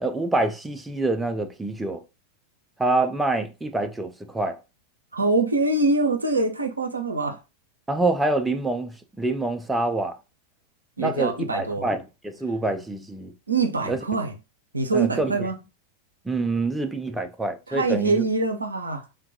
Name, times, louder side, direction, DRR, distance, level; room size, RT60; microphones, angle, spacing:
voice 1, 0.0-2.0 2.8-4.6 7.9-10.2 11.0-13.3 13.9-14.0 14.9-15.3 16.3-18.3, right 2 dB, 5° right, 0.3 m, -26 dB
voice 2, 5.1-7.4 11.0-11.9 13.5-14.4 14.7-15.6 17.7-19.1, right 3 dB, 80° right, 0.4 m, -24 dB
3.4 x 2.2 x 2.5 m
figure-of-eight pair, 90°, 0 cm